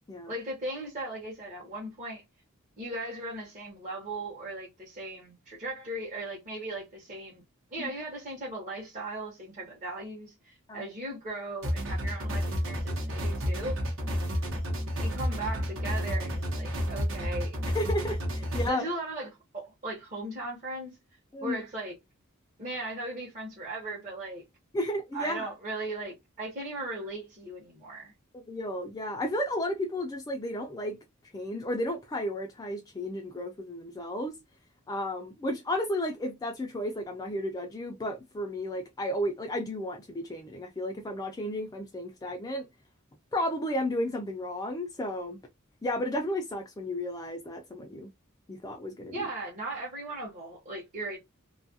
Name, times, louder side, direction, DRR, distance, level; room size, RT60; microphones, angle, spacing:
voice 1, 0.3-2.2 2.8-7.4 7.7-13.8 15.0-17.6 18.7-20.9 21.4-21.9 22.6-24.4 25.1-28.1 49.1-51.2, right 2 dB, 35° right, 0.8 m, -37 dB
sound 1, 11.6-18.7, equal, 65° right, 0.9 m, -31 dB
voice 2, 17.7-18.8 21.3-21.6 24.7-25.5 28.3-31.0 31.3-34.4 34.9-42.7 43.3-45.4 45.8-48.1 48.5-49.2, left 1 dB, 15° left, 0.3 m, -33 dB
2.7 x 2.3 x 2.6 m
head